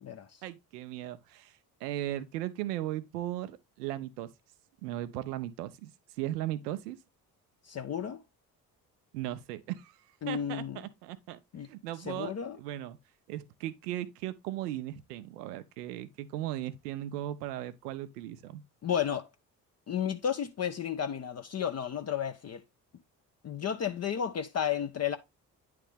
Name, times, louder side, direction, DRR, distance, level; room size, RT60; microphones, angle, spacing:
voice 1, 0.4-1.5 1.8-4.3 4.8-5.9 6.2-7.0 9.1-10.0 10.3-11.4 11.7-13.0 13.3-18.6, right 13 dB, 75° right, 0.7 m, -37 dB
voice 2, 7.7-8.2 10.2-10.8 11.5-11.7 12.1-12.6 18.8-19.3 19.9-22.6 23.4-25.2, left 8 dB, 35° left, 0.7 m, -32 dB
9.8 x 3.4 x 3.4 m
figure-of-eight pair, 45°, 48 cm